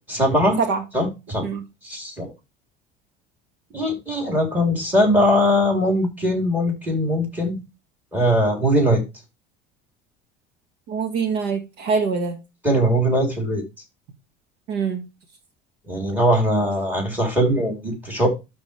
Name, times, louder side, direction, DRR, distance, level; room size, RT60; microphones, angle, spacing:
voice 1, 0.1-0.6 0.9-1.5 1.8-2.3 3.7-7.6 8.1-9.0 12.6-13.6 15.9-18.3, equal, 10° right, 3.3 m, -20 dB
voice 2, 10.9-12.4 14.7-15.0, right 5 dB, 65° right, 1.8 m, -24 dB
12.5 x 4.4 x 3.3 m
cardioid pair, 170°, 20 cm